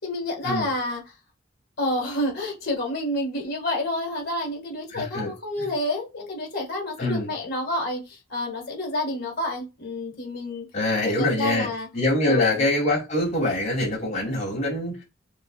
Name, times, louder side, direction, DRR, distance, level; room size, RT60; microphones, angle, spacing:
voice 1, 0.0-1.0 1.8-10.6 11.0-11.9 12.2-12.7, left 1 dB, 55° left, 2.2 m, -29 dB
voice 2, 4.9-5.3 5.6-5.7 7.0-7.3 10.7-11.7 11.9-15.0, left 1 dB, 40° left, 3.1 m, -24 dB
6.7 x 3.1 x 2.5 m
head